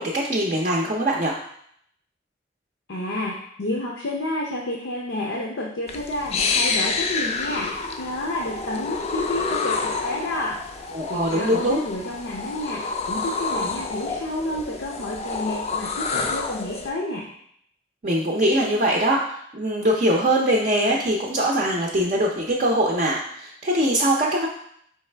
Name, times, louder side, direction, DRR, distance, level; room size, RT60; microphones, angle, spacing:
voice 1, 0.0-1.4 10.9-11.8 18.0-24.5, right 1 dB, 40° right, -2 dB, 0.5 m, -22 dB
voice 2, 2.9-7.7 8.0-10.6 11.1-12.8 13.1-17.3, left 1 dB, 90° left, -2 dB, 0.6 m, -30 dB
sound 1, 5.9-16.9, left 4 dB, 35° left, 0.3 m, -28 dB
4.8 x 3.2 x 3.3 m, 0.68 s
head